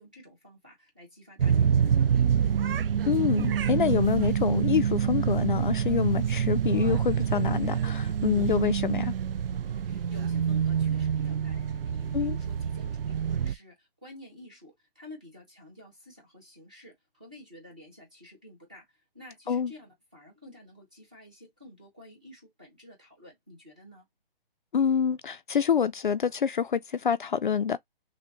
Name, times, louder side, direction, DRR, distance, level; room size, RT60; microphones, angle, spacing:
voice 1, 0.0-2.3 9.7-24.1, left 1 dB, 10° right, 0.6 m, -51 dB
sound 1, 1.4-13.5, right 8 dB, 70° right, 0.5 m, -26 dB
voice 2, 3.1-9.1 12.1-12.4 19.5-19.7 24.7-27.8, left 7 dB, 60° left, 0.4 m, -26 dB
6.0 x 2.2 x 2.8 m
hypercardioid pair, 175°, 29 cm